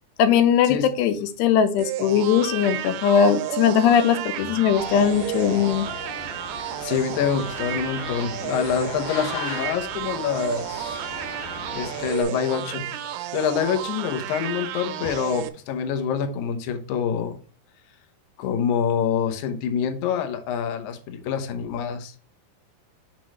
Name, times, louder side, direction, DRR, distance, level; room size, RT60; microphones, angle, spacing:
voice 1, 0.2-5.9, left 8 dB, 90° left, 10 dB, 2.9 m, -20 dB
sound 1, 1.8-15.5, right 13 dB, 85° right, 2.7 m, -32 dB
sound 2, 4.7-12.2, left 4 dB, 55° left, 2.8 m, -37 dB
voice 2, 6.8-11.1 11.7-12.9 13.3-17.4 18.4-22.1, left 7 dB, 75° left, 5 dB, 1.9 m, -26 dB
6.2 x 6.2 x 3.1 m, 0.36 s
omnidirectional pair, 4.8 m